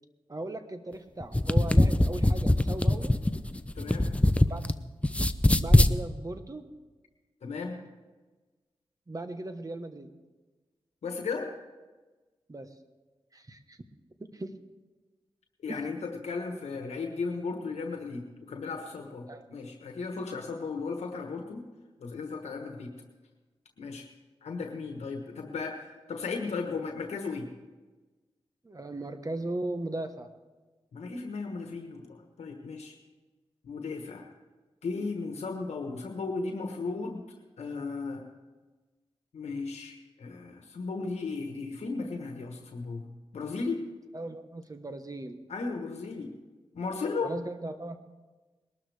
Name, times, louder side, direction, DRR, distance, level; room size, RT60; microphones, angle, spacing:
voice 1, 0.3-3.2 4.4-4.6 5.5-6.7 9.1-10.2 12.5-12.7 13.3-13.8 14.2-14.6 15.7-15.8 19.3-19.4 28.6-30.3 44.1-45.4 47.2-48.0, right 2 dB, 35° right, 8 dB, 1.3 m, -37 dB
sound 1, 1.2-4.7 5.0-5.9, left 1 dB, 10° left, 0.6 m, -22 dB
voice 2, 3.7-4.2 7.4-7.8 11.0-11.5 15.6-21.7 22.0-22.9 23.8-24.1 24.4-27.5 30.9-33.0 33.6-34.3 34.8-37.2 37.6-38.3 39.3-43.1 43.3-43.8 45.5-46.3 46.7-47.3, left 4 dB, 90° left, 3 dB, 1.3 m, -35 dB
21.0 x 12.5 x 3.5 m, 1.3 s
cardioid pair, 50°, 11 cm